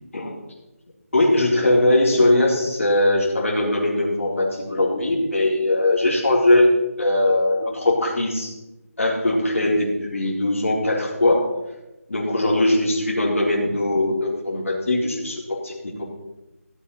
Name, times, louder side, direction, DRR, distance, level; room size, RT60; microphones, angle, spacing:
voice 1, 1.1-6.7 7.0-8.5 9.0-11.5 12.1-15.9, left 1 dB, 55° left, -4 dB, 4.1 m, -20 dB
16.0 x 8.3 x 4.3 m, 1.0 s
figure-of-eight pair, 170°, 8 cm